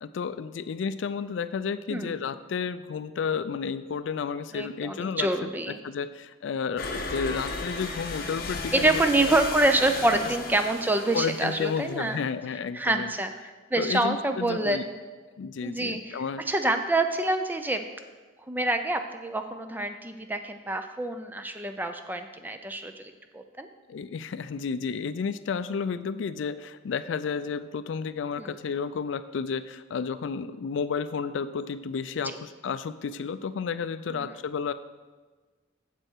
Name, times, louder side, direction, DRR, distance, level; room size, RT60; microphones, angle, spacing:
voice 1, 0.0-9.4 10.1-10.3 11.1-13.1 13.8-14.8 15.4-16.4 23.9-34.7, left 6 dB, 70° left, 13 dB, 0.4 m, -32 dB
voice 2, 4.5-5.8 8.7-12.2 12.7-13.3 13.7-14.9 15.6-17.9 18.5-23.7 28.4-28.5 34.1-34.3, right 2 dB, 10° right, 7 dB, 0.4 m, -26 dB
sound 1, 6.8-12.3, left 3 dB, 50° left, 0.8 m, -35 dB
7.9 x 7.5 x 4.5 m, 1.4 s
head